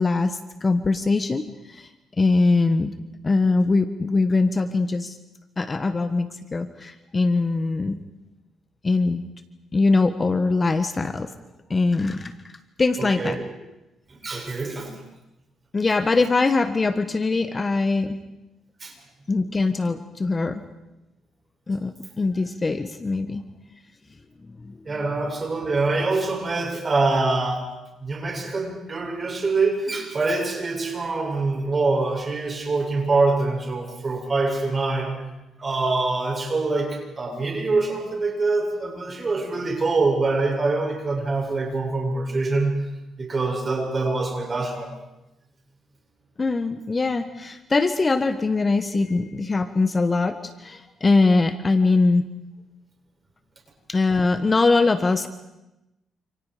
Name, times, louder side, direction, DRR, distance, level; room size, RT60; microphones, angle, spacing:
voice 1, 0.0-1.9 2.2-2.9 3.2-5.2 5.6-8.0 8.8-9.2 9.7-11.3 11.7-12.3 12.8-13.4 15.7-18.2 19.3-20.6 21.7-23.4 24.6-25.1 46.4-52.3 53.9-55.3, left 3 dB, 30° left, 10 dB, 1.3 m, -22 dB
voice 2, 13.0-13.3 14.1-14.9 18.8-18.9 24.8-35.2 35.6-42.9 43.2-44.9, right 3 dB, 30° right, 1 dB, 7.9 m, -24 dB
28.5 x 28.5 x 5.1 m, 0.95 s
cardioid pair, 90°, 0 cm